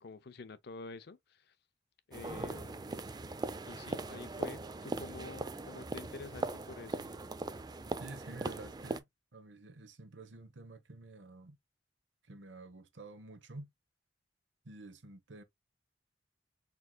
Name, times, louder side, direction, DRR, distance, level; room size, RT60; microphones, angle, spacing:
voice 1, 0.0-1.5 2.1-3.0 3.7-7.1, left 3 dB, 60° left, 0.6 m, -48 dB
sound 1, 2.1-9.0, right 2 dB, 20° right, 0.4 m, -40 dB
voice 2, 8.0-11.6 12.2-13.7 14.6-15.4, right 2 dB, 80° right, 1.0 m, -50 dB
4.5 x 3.8 x 2.2 m
head